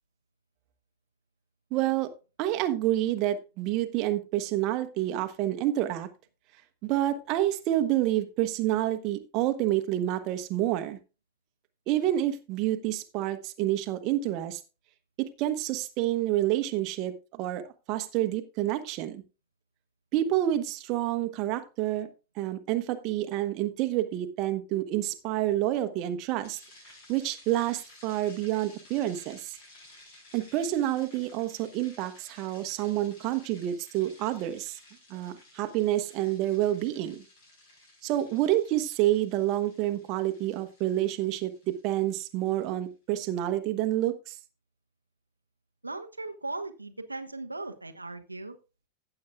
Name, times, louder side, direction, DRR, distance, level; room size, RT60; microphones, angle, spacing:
voice 1, 1.7-2.1 2.4-6.1 6.8-11.0 11.9-14.6 15.2-19.2 20.1-22.1 22.4-26.6 27.1-29.5 30.3-34.8 35.1-37.2 38.0-44.4, right 13 dB, 40° right, 8 dB, 1.1 m, -28 dB
sound 1, 26.4-42.7, left 2 dB, 50° left, 5.2 m, -55 dB
voice 2, 45.8-48.6, right 2 dB, 85° right, 6 dB, 0.9 m, -38 dB
15.0 x 7.9 x 2.4 m, 0.31 s
figure-of-eight pair, 90°, 0 cm